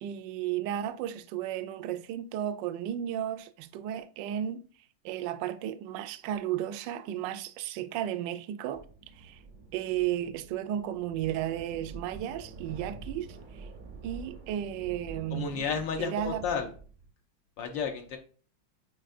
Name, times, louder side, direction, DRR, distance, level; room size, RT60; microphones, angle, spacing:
voice 1, 0.0-4.6 5.0-8.8 9.2-9.4 9.7-13.3 13.5-13.7 14.0-15.6 16.0-16.4, right 11 dB, 75° right, 1.1 m, -34 dB
sound 1, 8.7-17.1, right 3 dB, 45° right, 0.6 m, -47 dB
voice 2, 15.3-16.7 17.6-18.2, left 6 dB, 70° left, 1.3 m, -32 dB
8.8 x 4.3 x 2.5 m
omnidirectional pair, 2.3 m